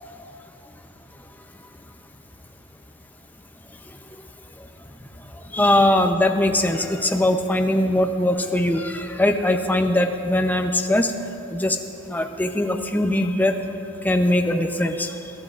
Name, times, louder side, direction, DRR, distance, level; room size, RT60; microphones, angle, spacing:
voice 1, 5.5-11.1 11.5-11.8 12.1-13.5 14.0-15.1, left 1 dB, 10° left, 4 dB, 0.6 m, -21 dB
24.0 x 12.0 x 2.5 m, 2.8 s
head